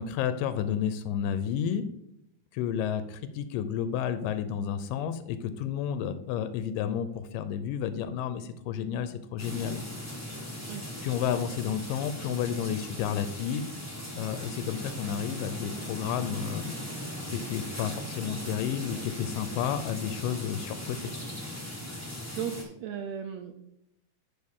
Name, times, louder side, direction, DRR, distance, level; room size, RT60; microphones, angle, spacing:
voice 1, 0.0-1.9 2.5-9.8 11.0-13.7 14.2-16.8 17.3-21.1, left 8 dB, 90° left, 11 dB, 2.2 m, -31 dB
sound 1, 9.4-22.6, left 1 dB, 20° left, 0.4 m, -39 dB
voice 2, 21.9-23.5, right 8 dB, 85° right, 5 dB, 1.5 m, -37 dB
10.5 x 5.1 x 3.6 m, 0.81 s
omnidirectional pair, 3.8 m